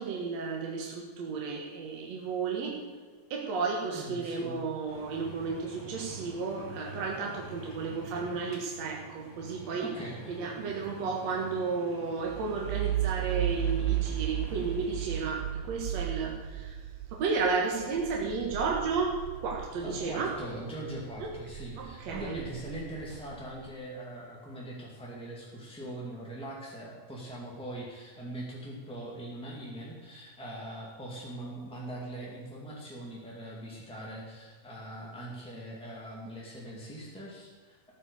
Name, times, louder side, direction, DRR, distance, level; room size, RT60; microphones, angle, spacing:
voice 1, 0.0-2.8 3.3-9.9 10.3-20.3 21.2-21.3 21.8-22.4, right 4 dB, 55° right, -1 dB, 2.2 m, -33 dB
voice 2, 3.8-4.6 9.8-10.4 19.8-37.9, right 1 dB, 5° left, -4 dB, 1.1 m, -41 dB
sound 1, 4.9-15.2, equal, 25° left, 3.4 m, -47 dB
sound 2, 12.3-20.5 20.9-23.5, right 12 dB, 80° right, 2.4 m, -35 dB
14.0 x 9.6 x 6.8 m, 1.5 s
omnidirectional pair, 4.3 m